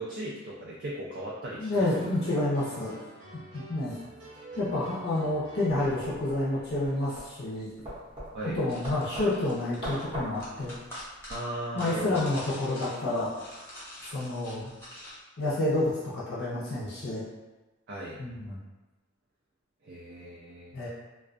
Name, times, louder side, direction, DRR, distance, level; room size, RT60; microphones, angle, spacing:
voice 1, 0.0-2.1 8.3-8.6 11.3-12.3 17.9-18.2 19.8-20.7, right 1 dB, 55° right, -5 dB, 0.4 m, -37 dB
voice 2, 1.6-3.0 3.5-4.0 4.6-7.7 8.4-10.7 11.7-13.3 14.0-14.7 15.4-17.2 18.2-18.6 20.7-20.9, left 2 dB, 55° left, -7 dB, 0.6 m, -29 dB
sound 1, 1.8-7.0, right 1 dB, 80° right, 0.9 m, -48 dB
sound 2, 5.7-11.4, equal, 25° right, 0.7 m, -41 dB
sound 3, 8.7-15.2, left 1 dB, 10° left, 0.8 m, -46 dB
2.3 x 2.2 x 2.4 m, 1.2 s
head